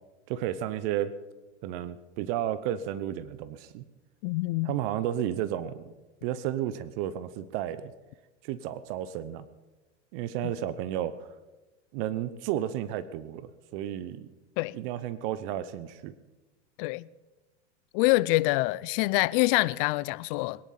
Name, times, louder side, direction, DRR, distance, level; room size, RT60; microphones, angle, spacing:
voice 1, 0.3-1.1 1.6-3.8 4.6-5.9 6.2-7.9 8.4-9.4 10.1-11.3 11.9-14.3 14.7-16.1, right 11 dB, 50° right, 0.9 m, -32 dB
voice 2, 4.2-4.8 10.4-10.5 14.6-14.8 16.8-17.1 17.9-20.7, left 21 dB, 50° left, 0.6 m, -26 dB
21.0 x 10.5 x 5.8 m
hypercardioid pair, 115°, 35 cm